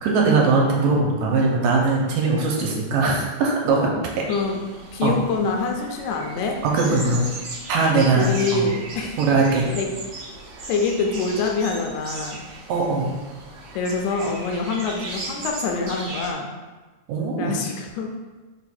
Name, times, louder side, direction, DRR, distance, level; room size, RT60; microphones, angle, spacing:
voice 1, 0.0-4.2 5.0-5.2 6.6-7.3 7.7-8.7 9.2-9.7 12.7-13.2 17.1-17.5, right 3 dB, 80° right, -1 dB, 1.8 m, -20 dB
voice 2, 4.3-4.6 4.9-6.6 8.2-9.2 9.7-9.9 10.7-12.4 13.8-16.5 17.4-18.1, left 4 dB, 85° left, 2 dB, 1.9 m, -25 dB
sound 1, 4.3-16.3, right 2 dB, 55° right, 1.9 m, -37 dB
4.7 x 2.2 x 4.2 m, 1.2 s
omnidirectional pair, 3.4 m